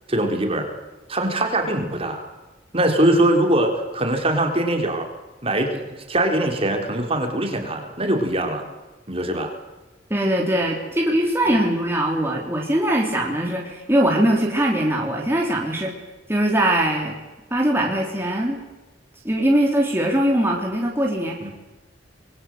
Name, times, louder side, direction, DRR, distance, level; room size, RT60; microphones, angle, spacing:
voice 1, 0.1-0.7 1.1-2.2 2.7-5.1 5.4-8.7 9.1-9.5 21.4-21.5, right 1 dB, 30° right, 4 dB, 3.9 m, -22 dB
voice 2, 10.1-15.9 16.3-17.2 17.5-18.6 19.2-21.4, right 1 dB, 15° right, -1 dB, 3.4 m, -21 dB
26.0 x 22.5 x 7.8 m, 1.1 s
head